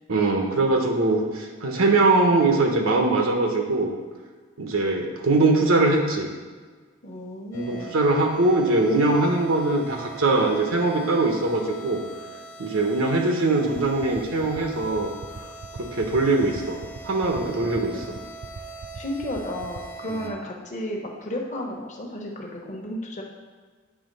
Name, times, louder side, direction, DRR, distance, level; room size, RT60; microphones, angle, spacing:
voice 1, 0.1-3.9 4.6-6.3 7.5-12.0 12.6-15.1 15.8-16.8 17.0-18.1 20.2-20.3, right 2 dB, 75° right, 2 dB, 1.0 m, -22 dB
voice 2, 7.0-8.0 17.4-18.1 18.9-23.2, left 1 dB, 35° left, 0 dB, 1.0 m, -33 dB
sound 1, 7.5-20.3, right 3 dB, 65° left, 1.0 m, -42 dB
sound 2, 14.0-19.8, right 4 dB, 50° right, 0.4 m, -38 dB
8.6 x 3.5 x 5.3 m, 1.5 s
head